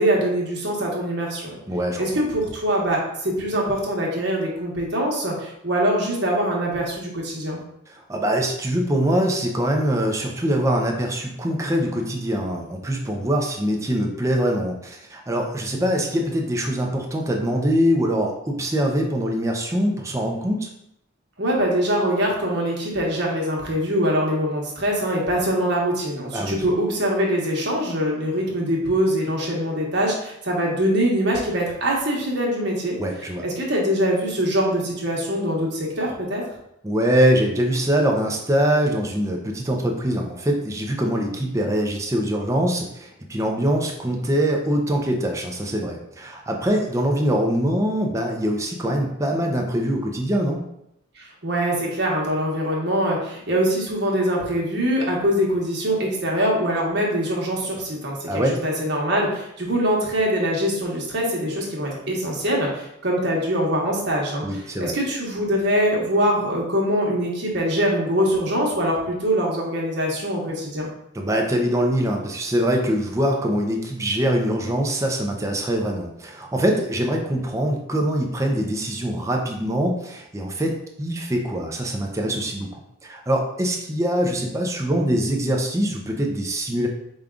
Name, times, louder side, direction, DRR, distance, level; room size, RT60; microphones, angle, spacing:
voice 1, 0.0-1.6 1.9-7.6 21.4-33.0 33.4-36.4 51.2-58.3 58.6-64.4 64.8-70.9, equal, 55° right, -2 dB, 1.1 m, -23 dB
voice 2, 1.7-2.1 7.9-20.7 26.3-26.6 33.0-33.4 36.8-50.6 58.3-58.6 64.4-64.9 71.1-82.7 83.0-86.9, equal, 15° right, 1 dB, 0.5 m, -23 dB
5.1 x 2.3 x 3.7 m, 0.78 s
head